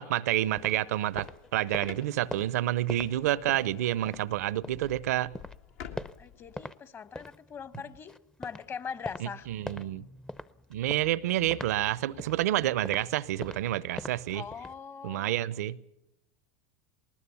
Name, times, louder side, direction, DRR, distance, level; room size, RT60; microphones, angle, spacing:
voice 1, 0.0-5.3 9.2-10.0 10.7-14.4 15.0-15.8, right 13 dB, 75° right, 0.7 m, -29 dB
sound 1, 0.5-4.9 5.3-6.8 7.1-14.8, left 1 dB, 10° left, 0.6 m, -44 dB
sound 2, 0.8-6.5, left 8 dB, 70° left, 1.9 m, -50 dB
voice 2, 6.2-8.1 8.4-9.5 14.3-15.4, left 6 dB, 30° left, 1.1 m, -41 dB
20.0 x 19.5 x 7.0 m
hypercardioid pair, 100°, 8 cm